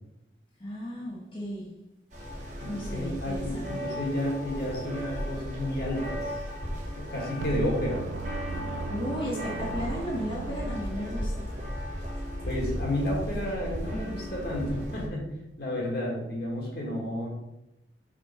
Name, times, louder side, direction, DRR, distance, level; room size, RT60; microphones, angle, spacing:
voice 1, 0.6-1.7 2.6-3.7 8.9-11.4, equal, 30° left, -6 dB, 1.5 m, -35 dB
sound 1, 2.1-15.1, equal, 40° right, 1.2 m, -35 dB
voice 2, 2.6-6.2 7.0-8.0 12.4-15.3 15.6-17.3, left 1 dB, 55° left, -3 dB, 1.9 m, -31 dB
sound 2, 7.4-11.4, right 4 dB, 80° right, 0.4 m, -38 dB
5.7 x 4.2 x 4.4 m, 0.88 s
head